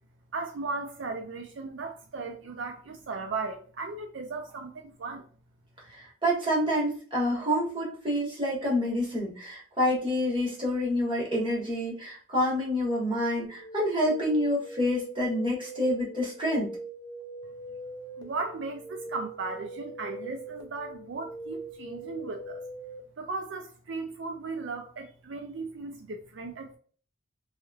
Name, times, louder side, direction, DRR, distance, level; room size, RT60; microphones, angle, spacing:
voice 1, 0.3-5.2 18.2-22.6 23.2-26.8, right 3 dB, 70° right, 0.4 m, -36 dB
voice 2, 6.2-16.7, equal, 25° right, 1.3 m, -27 dB
sound 1, 13.4-23.0, right 1 dB, 20° left, 0.6 m, -42 dB
3.1 x 3.0 x 2.3 m
head